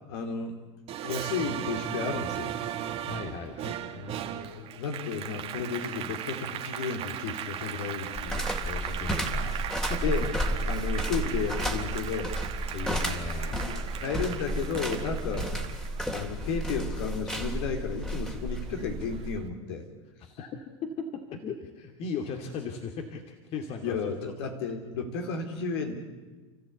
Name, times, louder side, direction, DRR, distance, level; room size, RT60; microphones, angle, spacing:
voice 1, 0.1-0.6 1.0-2.5 3.9-8.5 10.0-10.3 10.6-12.3 13.5-15.5 16.1-19.9 23.8-26.0, left 5 dB, 65° left, 4 dB, 4.1 m, -33 dB
Applause, 0.9-17.7 18.1-19.3, right 11 dB, 45° right, 2.0 m, -38 dB
voice 2, 3.1-3.6 7.7-8.0 8.5-10.0 12.7-13.8 20.4-23.2 23.5-24.2, left 5 dB, 45° left, 3 dB, 2.5 m, -38 dB
sound 1, 8.2-19.4, equal, 5° left, 3.2 m, -32 dB
30.0 x 15.0 x 8.4 m, 1.3 s
hypercardioid pair, 95°, 14 cm